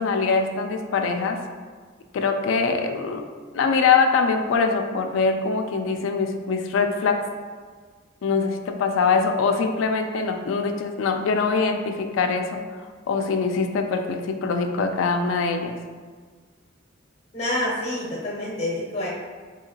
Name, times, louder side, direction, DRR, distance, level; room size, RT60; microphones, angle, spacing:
voice 1, 0.0-1.4 2.1-3.2 3.5-7.3 8.2-12.6 13.1-15.8, left 4 dB, 75° left, 5 dB, 0.3 m, -23 dB
voice 2, 17.3-19.1, left 1 dB, 30° left, -5 dB, 0.6 m, -27 dB
3.7 x 2.8 x 2.8 m, 1.5 s
head